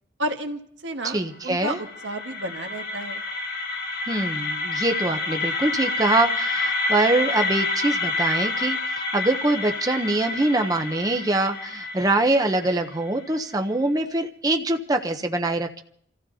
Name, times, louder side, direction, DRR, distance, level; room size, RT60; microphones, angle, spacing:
voice 1, 0.2-3.3, right 1 dB, 85° right, 4 dB, 1.4 m, -32 dB
voice 2, 1.0-1.8 4.1-15.8, right 2 dB, 20° right, 5 dB, 0.7 m, -24 dB
sound 1, 1.4-13.4, left 3 dB, 80° left, 4.3 m, -28 dB
29.0 x 15.0 x 2.8 m, 0.66 s
head